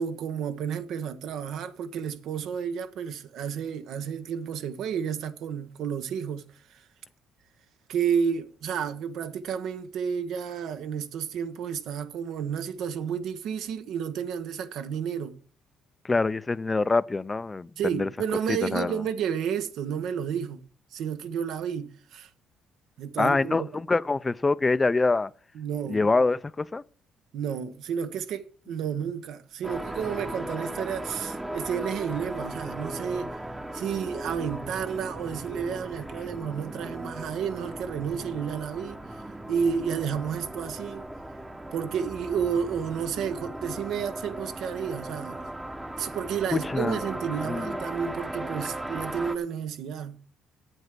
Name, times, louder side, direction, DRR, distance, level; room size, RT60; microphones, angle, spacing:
voice 1, 0.0-6.4 6.7-6.8 7.9-15.4 17.8-20.6 20.9-22.3 23.0-23.7 25.5-26.0 27.3-33.4 33.7-39.2 39.5-41.0 41.7-45.5 46.0-50.2, right 7 dB, 70° right, 1.1 m, -31 dB
voice 2, 16.0-18.1 18.5-18.9 23.2-25.3 25.9-26.8 46.5-47.0 47.5-47.7, left 3 dB, 20° left, 0.5 m, -25 dB
sound 1, 29.6-49.4, right 1 dB, 10° right, 0.9 m, -37 dB
8.1 x 8.1 x 7.5 m
cardioid pair, 110°, 0 cm